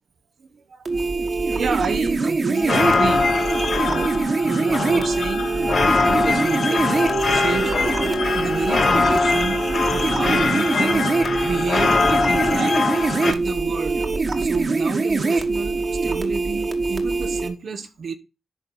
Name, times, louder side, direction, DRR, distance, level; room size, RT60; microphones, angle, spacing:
voice 1, 0.7-1.0 1.5-3.4 3.7-5.5 6.0-7.7 8.3-9.6 9.9-11.1 11.4-12.8 13.1-14.0 14.4-18.1, right 5 dB, 70° right, 1.1 m, -30 dB
sound 1, 0.9-17.5, right 3 dB, 55° right, 1.7 m, -23 dB
sound 2, 2.5-13.3, left 4 dB, 65° left, 1.3 m, -22 dB
11.0 x 3.8 x 4.3 m
cardioid pair, 55°, 0 cm